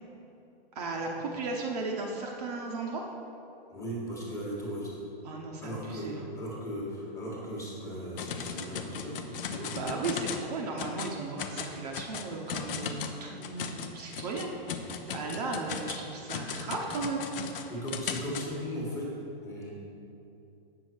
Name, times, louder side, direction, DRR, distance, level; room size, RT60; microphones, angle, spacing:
voice 1, 0.7-3.1 5.2-6.2 9.6-14.8 15.1-17.3, right 3 dB, 40° right, 0 dB, 0.8 m, -35 dB
voice 2, 3.7-4.9 5.6-9.7 17.7-19.1 19.4-19.7, equal, 10° left, -5 dB, 1.4 m, -37 dB
sound 1, 8.2-10.5 10.8-11.1 11.4-18.5, left 7 dB, 65° left, 0.7 m, -37 dB
8.0 x 6.6 x 4.5 m, 2.9 s
hypercardioid pair, 155°, 31 cm